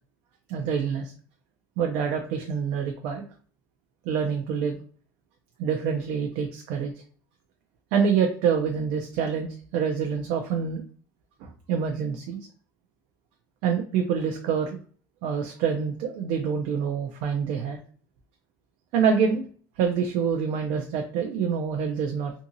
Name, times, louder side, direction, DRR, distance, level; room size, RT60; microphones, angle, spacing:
voice 1, 0.5-1.1 1.8-3.2 4.1-4.8 5.6-6.9 7.9-10.8 11.4-12.5 13.6-14.8 15.2-17.8 18.9-19.4 19.8-22.3, right 6 dB, 70° right, 3 dB, 0.4 m, -26 dB
2.7 x 2.7 x 2.5 m, 0.44 s
cardioid pair, 160°, 10 cm